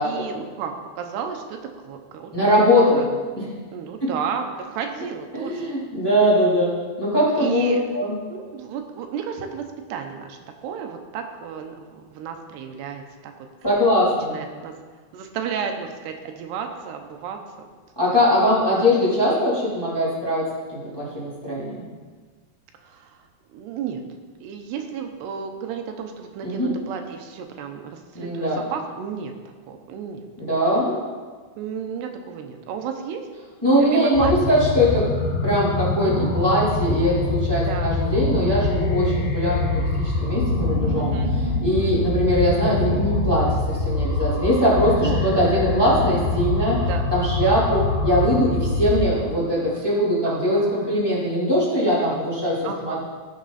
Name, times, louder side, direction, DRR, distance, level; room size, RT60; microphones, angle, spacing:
voice 1, 0.0-2.3 2.9-3.1 3.7-5.8 7.4-7.9 8.3-13.5 14.3-14.7 15.1-17.7 18.1-18.2 18.5-18.9 22.8-24.0 24.4-29.3 29.7-30.3 31.6-33.2 33.8-34.6 36.0-36.3 37.6-37.9 41.0-41.3 45.0-45.3 46.9-47.1 50.3-51.0 52.0-52.2 52.6-53.0, right 7 dB, 90° right, 5 dB, 3.0 m, -33 dB
voice 2, 2.3-3.0 3.3-3.4 5.3-6.7 7.0-8.1 13.6-14.3 18.0-20.5 20.7-21.8 26.4-26.7 28.1-28.6 30.4-31.0 33.6-35.1 35.4-41.1 41.6-46.8 47.1-53.0, equal, 5° left, -8 dB, 2.7 m, -21 dB
sound 1, 34.1-49.1, left 2 dB, 60° left, 3.7 m, -24 dB
17.0 x 6.7 x 4.2 m, 1.5 s
omnidirectional pair, 4.6 m